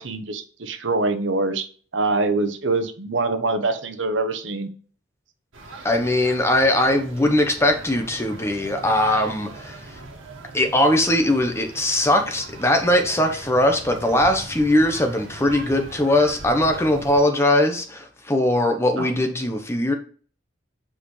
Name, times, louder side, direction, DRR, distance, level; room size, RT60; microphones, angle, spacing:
voice 1, 0.0-1.7 1.9-4.7 19.0-19.1, right 3 dB, 75° right, 1.0 m, -24 dB
sound 1, 5.5-17.2, right 2 dB, 90° right, 1.6 m, -40 dB
voice 2, 5.8-9.8 10.5-19.9, left 1 dB, 15° left, 0.9 m, -20 dB
7.8 x 4.9 x 3.3 m
head